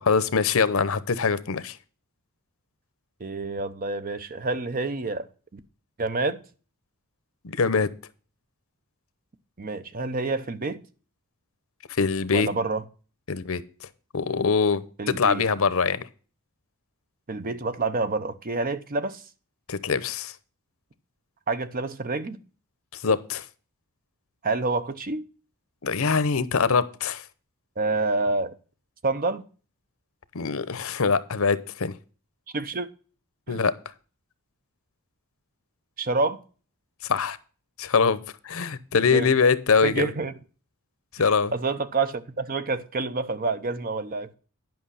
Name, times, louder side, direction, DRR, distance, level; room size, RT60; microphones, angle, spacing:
voice 1, 0.0-1.8 7.4-7.9 11.9-12.5 13.3-13.6 14.1-16.1 19.7-20.3 23.0-23.4 25.8-27.2 30.3-31.9 33.5-33.7 37.1-37.4 37.8-40.1 41.1-41.5, left 5 dB, 65° left, 0.8 m, -23 dB
voice 2, 3.2-5.3 5.5-5.6 6.0-6.4 9.6-10.8 12.3-12.8 15.0-15.4 17.3-19.2 21.5-22.4 24.4-25.2 27.8-28.5 29.0-29.4 32.5-32.9 33.5-33.6 36.0-36.4 39.1-39.3 39.8-40.3 41.5-44.3, right 3 dB, 40° right, 0.8 m, -28 dB
10.5 x 5.9 x 5.6 m
head